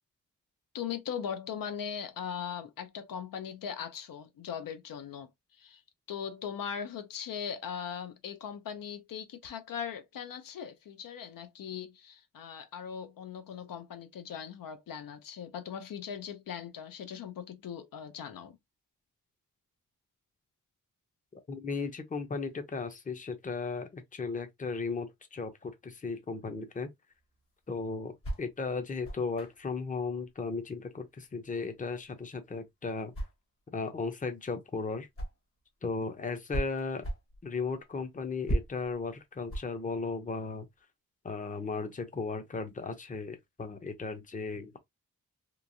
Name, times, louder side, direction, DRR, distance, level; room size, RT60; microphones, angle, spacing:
voice 1, 0.7-5.8 6.1-18.6, left 7 dB, 80° left, 0.6 m, -39 dB
voice 2, 21.5-26.9 27.7-33.1 33.7-35.1 35.8-37.1 37.4-40.7 41.2-44.8, left 4 dB, 25° left, 0.6 m, -36 dB
sound 1, 27.1-35.7 36.0-40.8, right 1 dB, 40° left, 1.0 m, -39 dB
3.0 x 2.3 x 2.6 m
wide cardioid pair, 95°, 33 cm